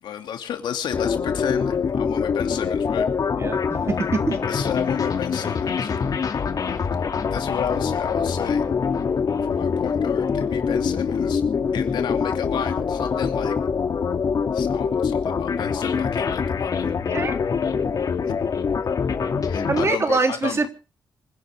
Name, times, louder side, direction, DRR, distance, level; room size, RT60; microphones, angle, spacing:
voice 1, 0.0-3.1 4.5-5.9 7.3-8.7 9.4-11.4 11.7-13.5 14.5-16.9 18.3-18.5 18.8-18.9 19.4-20.7, left 9 dB, 85° left, 5 dB, 2.8 m, -32 dB
sound 1, 0.9-19.9, left 6 dB, 55° left, 2.6 m, -24 dB
voice 2, 3.4-4.4 17.1-17.4 19.7-20.7, right 3 dB, 35° right, 5 dB, 3.5 m, -24 dB
26.5 x 11.5 x 3.6 m, 0.35 s
cardioid pair, 90°, 8 cm